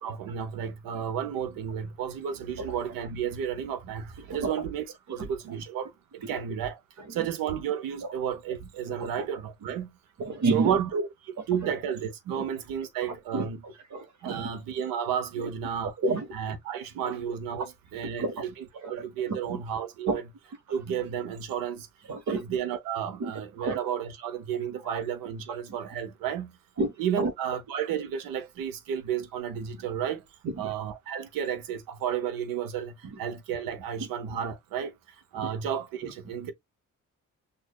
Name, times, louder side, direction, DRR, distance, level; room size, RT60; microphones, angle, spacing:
voice 1, 0.0-6.8 7.1-10.0 10.5-13.6 14.2-16.0 16.3-20.2 20.7-21.9 22.3-26.6 27.0-30.2 30.6-34.9 35.3-36.5, right 8 dB, 80° right, 0.9 m, -32 dB
voice 2, 10.2-10.7 12.4-12.5 13.3-14.5 16.0-16.3 18.2-18.3 19.2-19.6 20.1-20.2 22.1-22.4 23.2-23.3 23.6-23.8 26.8-26.9 27.2-27.3 30.6-30.7, right 3 dB, 55° right, 1.2 m, -29 dB
6.3 x 2.6 x 2.3 m
supercardioid pair, 60°, 34 cm